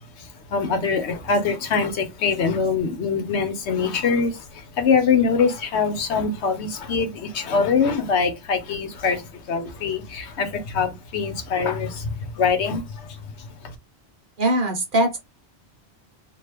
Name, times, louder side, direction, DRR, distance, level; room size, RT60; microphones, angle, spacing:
voice 1, 0.2-13.7, left 5 dB, 70° left, 1.0 m, -24 dB
voice 2, 14.4-15.2, right 1 dB, 50° right, 1.0 m, -21 dB
2.9 x 2.4 x 3.3 m
omnidirectional pair, 1.2 m